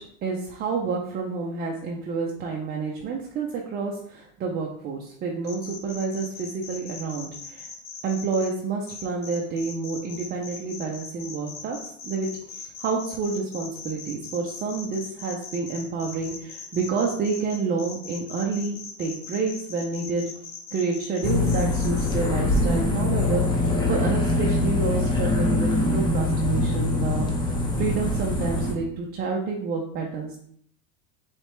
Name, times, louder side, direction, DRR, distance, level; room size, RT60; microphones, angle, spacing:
voice 1, 0.2-7.7 8.0-11.8 12.0-20.2 20.7-27.3 27.8-30.4, right 4 dB, 25° right, -1 dB, 0.5 m, -29 dB
sound 1, 5.4-8.5 8.9-22.1, left 5 dB, 50° left, 1.5 m, -40 dB
sound 2, 21.2-28.7, left 2 dB, 10° left, 0.6 m, -23 dB
4.7 x 3.2 x 3.1 m, 0.66 s
supercardioid pair, 140°, 42 cm